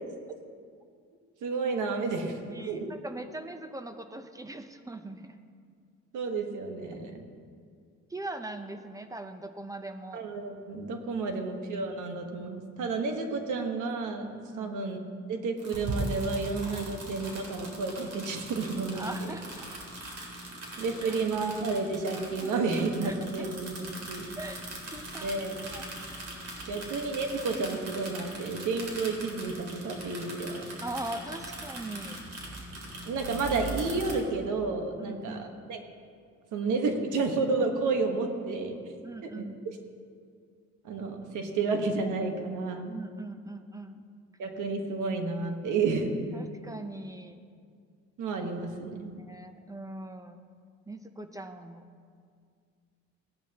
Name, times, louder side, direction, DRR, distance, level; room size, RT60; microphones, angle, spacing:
voice 1, 1.4-2.8 6.1-7.2 10.1-15.0 15.3-19.3 20.8-24.3 25.2-25.6 26.7-30.6 33.0-35.8 36.5-38.8 39.4-39.5 40.8-42.9 44.4-46.4 48.2-49.1, right 3 dB, 80° right, 4 dB, 1.4 m, -31 dB
voice 2, 2.5-5.4 8.1-10.2 14.5-14.7 18.9-19.8 21.0-21.2 22.4-22.5 23.0-23.5 24.4-25.9 26.7-26.8 30.8-32.2 35.0-35.5 39.0-39.6 42.9-44.0 46.3-47.4 49.3-50.4 50.9-51.9, right 2 dB, 10° right, 8 dB, 0.8 m, -41 dB
sound 1, 15.6-34.1, right 2 dB, 55° right, 3.2 m, -40 dB
17.0 x 10.5 x 2.9 m, 2.2 s
cardioid pair, 90°, 30 cm